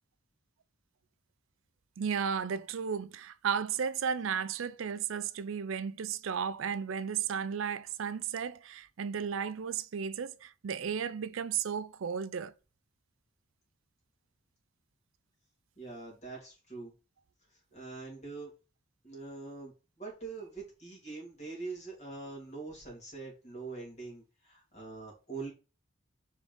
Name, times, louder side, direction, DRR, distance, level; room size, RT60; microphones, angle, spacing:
voice 1, 2.0-12.5, right 7 dB, 75° right, 0.4 m, -34 dB
voice 2, 15.8-16.9 17.7-18.5 19.0-19.7 20.0-25.5, right 3 dB, 35° left, 2.8 m, -43 dB
5.0 x 3.7 x 5.2 m
head